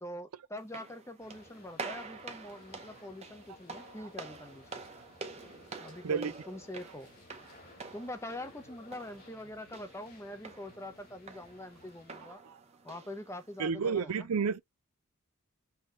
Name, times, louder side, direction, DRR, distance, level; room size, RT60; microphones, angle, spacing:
voice 1, 0.0-4.8 5.8-7.2 7.9-12.4 12.8-14.3, left 1 dB, 10° left, 0.7 m, -44 dB
sound 1, 0.6-13.6, right 4 dB, 30° right, 0.8 m, -48 dB
sound 2, 1.2-12.3, left 3 dB, 45° left, 1.9 m, -58 dB
voice 2, 13.6-14.6, right 5 dB, 85° right, 0.5 m, -30 dB
5.7 x 2.9 x 3.2 m
head